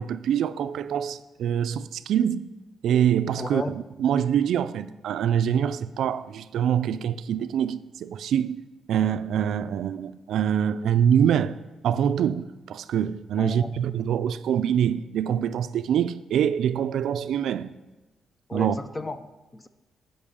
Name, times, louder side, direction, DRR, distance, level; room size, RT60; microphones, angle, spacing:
voice 1, 0.0-2.5 2.8-17.7 18.5-18.8, right 9 dB, 75° right, 0.3 m, -25 dB
voice 2, 3.4-3.7 13.4-13.7 18.5-19.7, left 2 dB, 15° left, 0.4 m, -34 dB
8.6 x 5.4 x 6.9 m
cardioid pair, 155°, 0 cm